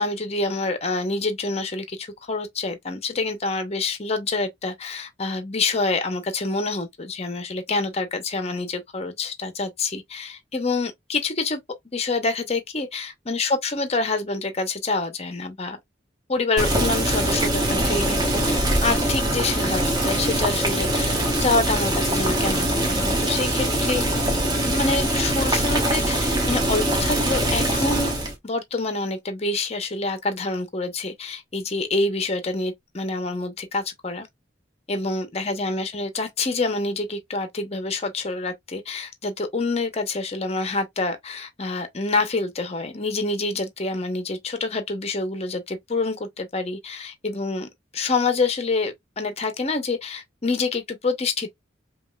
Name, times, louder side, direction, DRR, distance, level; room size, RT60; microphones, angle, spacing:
voice 1, 0.0-11.6 11.9-15.8 16.3-24.1 24.7-28.1 28.4-34.3 34.9-51.5, left 3 dB, 30° left, 0.7 m, -27 dB
Boiling, 16.6-28.3, right 1 dB, 20° right, 1.1 m, -23 dB
5.1 x 2.4 x 2.3 m
head